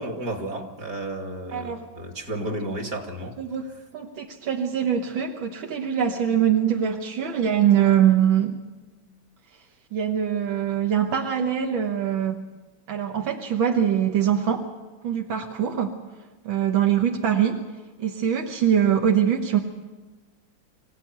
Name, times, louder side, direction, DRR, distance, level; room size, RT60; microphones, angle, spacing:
voice 1, 0.0-3.3, right 1 dB, 50° right, 3 dB, 3.0 m, -32 dB
voice 2, 1.5-1.9 3.4-3.6 3.9-8.6 9.9-12.4 12.9-14.7 15.0-16.0 16.5-17.6 18.0-19.6, right 9 dB, 85° right, 3 dB, 2.1 m, -23 dB
25.5 x 16.0 x 9.5 m, 1.2 s
omnidirectional pair, 2.1 m